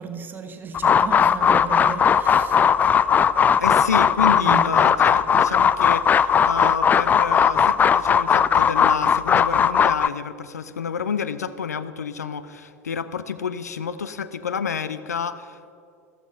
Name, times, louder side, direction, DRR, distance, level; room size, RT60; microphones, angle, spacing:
voice 1, 0.0-2.6 4.4-4.7, right 5 dB, 20° right, 6 dB, 1.4 m, -34 dB
sound 1, 0.7-10.1, left 7 dB, 20° left, 0.3 m, -18 dB
voice 2, 3.6-15.7, left 6 dB, 75° left, 13 dB, 0.7 m, -29 dB
14.5 x 14.0 x 5.7 m, 2.5 s
figure-of-eight pair, 85°, 9 cm